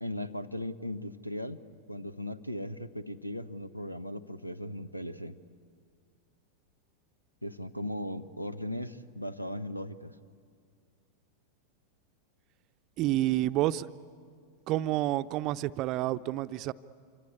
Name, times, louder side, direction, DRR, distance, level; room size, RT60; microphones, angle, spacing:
voice 1, 0.0-5.4 7.4-10.1, left 1 dB, 90° left, 15 dB, 0.9 m, -38 dB
voice 2, 13.0-13.9 14.7-16.7, right 15 dB, 40° right, 13 dB, 0.6 m, -29 dB
27.0 x 24.5 x 8.7 m, 2.2 s
figure-of-eight pair, 90°, 0 cm